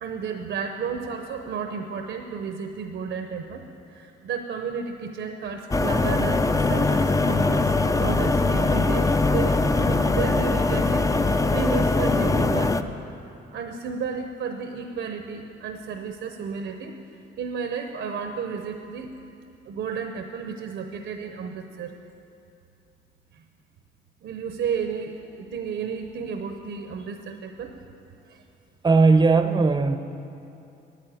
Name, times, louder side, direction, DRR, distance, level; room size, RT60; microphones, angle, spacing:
voice 1, 0.0-7.7 8.0-12.8 13.5-17.0 17.4-19.1 19.7-21.9 23.3-23.4 24.2-27.7 28.3-28.4, right 6 dB, 70° right, 5 dB, 0.8 m, -32 dB
sound 1, 5.7-12.8, left 3 dB, 15° left, 0.5 m, -22 dB
voice 2, 28.8-30.0, right 4 dB, 20° right, 8 dB, 0.7 m, -18 dB
9.4 x 9.2 x 9.2 m, 2.7 s
cardioid pair, 90°, 20 cm